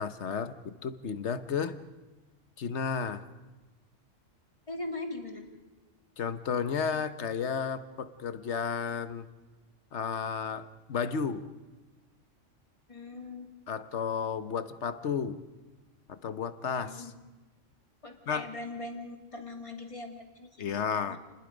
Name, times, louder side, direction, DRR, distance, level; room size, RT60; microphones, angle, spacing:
voice 1, 0.0-1.8 2.6-3.2 6.2-9.3 9.9-11.4 13.7-15.4 16.1-17.1 18.3-18.5 20.6-21.2, left 6 dB, 65° left, 11 dB, 1.3 m, -32 dB
voice 2, 4.7-5.5 12.9-13.5 16.9-17.1 18.0-21.2, left 2 dB, 25° left, 2 dB, 2.5 m, -41 dB
29.0 x 21.0 x 5.2 m, 1.2 s
omnidirectional pair, 1.3 m